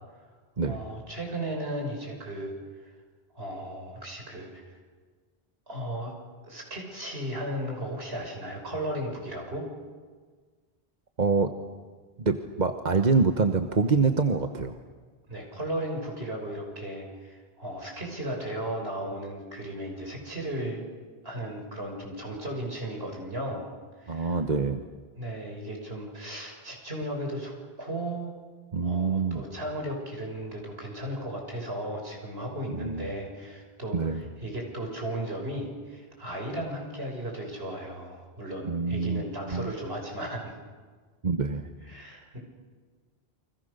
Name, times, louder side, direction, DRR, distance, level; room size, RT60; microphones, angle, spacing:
voice 1, 0.6-2.5 2.8-2.9 3.3-4.8 5.7-6.1 6.5-9.7 15.3-20.8 21.2-23.7 24.0-24.4 25.2-27.5 27.8-28.4 28.8-40.5 41.8-42.4, right 1 dB, 75° right, 1 dB, 6.6 m, -35 dB
voice 2, 11.2-11.5 12.2-14.7 24.1-24.8 28.7-29.4 32.7-33.1 33.9-34.2 38.6-39.2 39.5-39.7 41.2-41.6, right 4 dB, 45° right, 7 dB, 1.3 m, -25 dB
29.5 x 25.0 x 6.7 m, 1.5 s
omnidirectional pair, 1.0 m